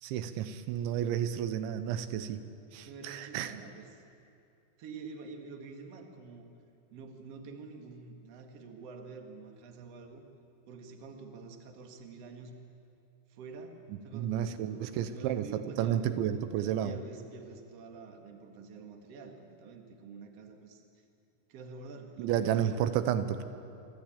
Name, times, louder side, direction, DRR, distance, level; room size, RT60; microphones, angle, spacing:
voice 1, 0.0-2.4 2.7-3.5 13.9-15.5 15.8-16.9 22.2-23.4, right 10 dB, 85° right, 11 dB, 3.0 m, -31 dB
voice 2, 2.8-4.0 4.8-6.4 6.9-10.2 10.6-12.6 13.3-13.8 14.0-16.0 16.5-20.8 21.5-23.0, right 4 dB, 65° right, 4 dB, 1.5 m, -47 dB
28.0 x 12.0 x 8.8 m, 2.6 s
omnidirectional pair, 5.5 m